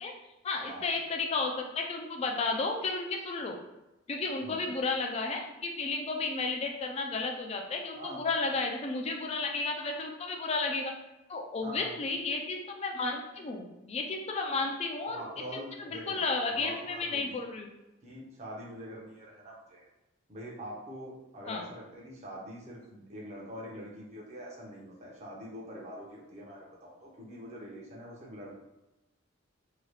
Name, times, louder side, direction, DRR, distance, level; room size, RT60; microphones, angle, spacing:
voice 1, 0.4-3.6 4.1-10.9 11.3-15.2 15.5-17.7 21.5-21.7, left 3 dB, 30° left, 2 dB, 0.4 m, -33 dB
voice 2, 8.0-8.3 11.6-11.9 15.1-17.4 18.0-19.9 20.3-28.5, equal, 35° right, -3 dB, 0.8 m, -44 dB
2.8 x 2.3 x 3.2 m, 0.98 s
head